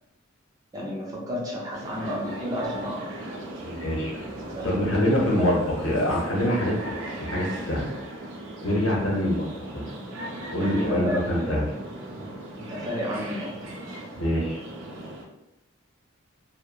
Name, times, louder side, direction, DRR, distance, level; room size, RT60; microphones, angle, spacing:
voice 1, 0.7-3.2 4.5-5.6 9.4-9.5 10.6-11.7 12.6-13.6, equal, 15° right, -4 dB, 0.5 m, -32 dB
sound 1, 1.7-15.2, right 1 dB, 70° right, 0.5 m, -37 dB
voice 2, 3.6-4.3 4.6-6.7 7.2-7.9 8.6-9.5 9.7-9.8 10.5-11.6 14.2-14.6, left 1 dB, 75° left, -3 dB, 0.8 m, -25 dB
3.0 x 2.0 x 2.4 m, 0.87 s
head